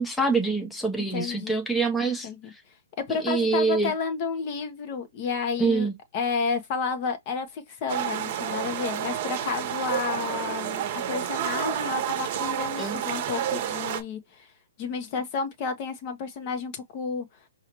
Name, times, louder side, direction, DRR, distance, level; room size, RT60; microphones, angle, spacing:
voice 1, 0.0-2.3 3.1-3.9 5.6-5.9 12.8-13.0, right 3 dB, 5° left, 0.9 m, -25 dB
voice 2, 1.1-1.6 2.2-2.5 3.0-5.9 6.1-14.5 14.8-17.2, left 5 dB, 30° left, 1.1 m, -31 dB
sound 1, 7.9-14.0, right 10 dB, 35° right, 1.0 m, -30 dB
4.8 x 2.7 x 3.0 m
hypercardioid pair, 150°, 0 cm